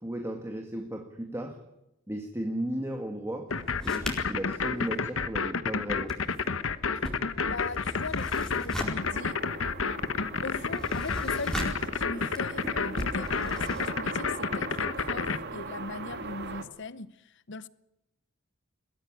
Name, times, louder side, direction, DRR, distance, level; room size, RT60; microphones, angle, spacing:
voice 1, 0.0-1.6 2.1-3.5 3.8-6.1, right 1 dB, 15° right, 1.9 m, -35 dB
sound 1, 3.5-15.4, left 5 dB, 80° left, 1.2 m, -29 dB
sound 2, 3.5-5.7 5.9-13.9, equal, 5° left, 4.5 m, -40 dB
voice 2, 7.4-9.4 10.4-17.7, left 3 dB, 60° left, 0.9 m, -40 dB
sound 3, 9.0-16.6, right 3 dB, 55° right, 1.8 m, -40 dB
22.0 x 15.5 x 9.9 m
head